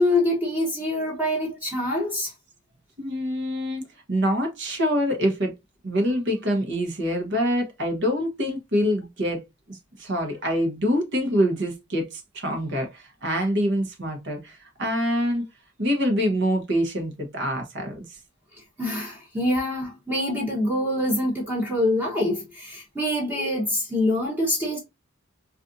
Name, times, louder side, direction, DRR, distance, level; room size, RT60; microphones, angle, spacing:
voice 1, 0.0-2.3 18.8-24.8, left 1 dB, 10° right, 1.0 m, -25 dB
voice 2, 3.0-3.8 4.1-5.5 5.8-9.4 9.7-15.4 15.8-18.2, equal, 55° right, 1.1 m, -25 dB
4.1 x 2.6 x 2.6 m
head